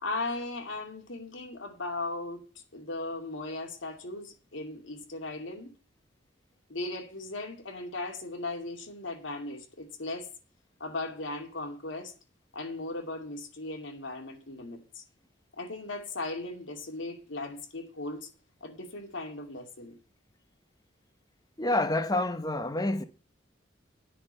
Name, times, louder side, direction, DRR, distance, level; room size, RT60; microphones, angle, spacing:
voice 1, 0.0-2.4 2.7-5.7 6.7-10.3 10.8-12.1 12.5-15.0 15.6-18.3 18.6-19.9, left 2 dB, 85° left, 2.5 m, -37 dB
voice 2, 21.6-23.0, left 2 dB, 20° left, 0.9 m, -28 dB
10.0 x 6.3 x 8.8 m
head